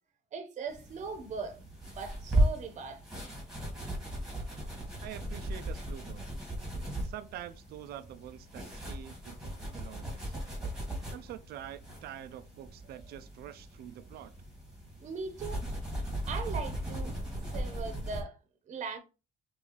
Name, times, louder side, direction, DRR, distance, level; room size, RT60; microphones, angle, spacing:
voice 1, 0.3-3.2 15.0-15.6 16.3-18.4 18.7-19.0, right 5 dB, 45° right, 0.9 m, -40 dB
sound 1, 0.7-18.2, right 1 dB, 5° right, 1.9 m, -36 dB
voice 2, 5.0-6.3 7.0-10.3 11.1-14.3, right 11 dB, 70° right, 0.5 m, -46 dB
5.4 x 2.7 x 3.0 m
cardioid pair, 110°, 17 cm